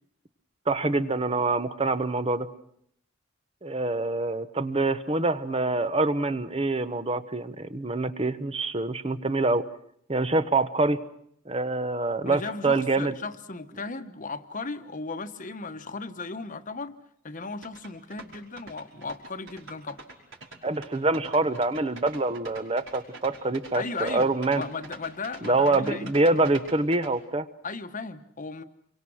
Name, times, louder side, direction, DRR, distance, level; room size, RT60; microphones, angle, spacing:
voice 1, 0.7-2.5 3.6-9.6 10.1-11.0 11.5-13.1 20.6-24.6 25.4-27.5, right 2 dB, 30° right, 12 dB, 1.1 m, -25 dB
voice 2, 12.2-17.0 17.2-20.0 23.7-26.1 27.6-28.6, left 3 dB, 40° left, 9 dB, 1.2 m, -36 dB
sound 1, 17.6-27.1, right 3 dB, 65° right, 5.4 m, -44 dB
27.5 x 24.0 x 6.4 m, 0.70 s
head